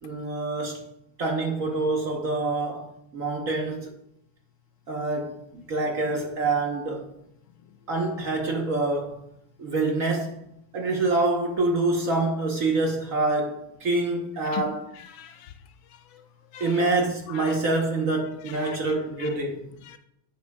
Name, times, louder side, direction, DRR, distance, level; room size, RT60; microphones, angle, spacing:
voice 1, 0.0-0.9 1.2-3.9 4.9-7.1 7.9-9.2 9.6-10.4 10.7-14.9 16.6-19.7, right 2 dB, 50° right, 1.1 m, -26 dB
voice 2, 15.0-15.5 16.1-16.2 16.5-16.9 17.3-17.6 18.5-18.8 19.2-19.3 19.9-20.0, left 12 dB, 75° left, 1.4 m, -39 dB
10.0 x 8.1 x 2.2 m
omnidirectional pair, 2.2 m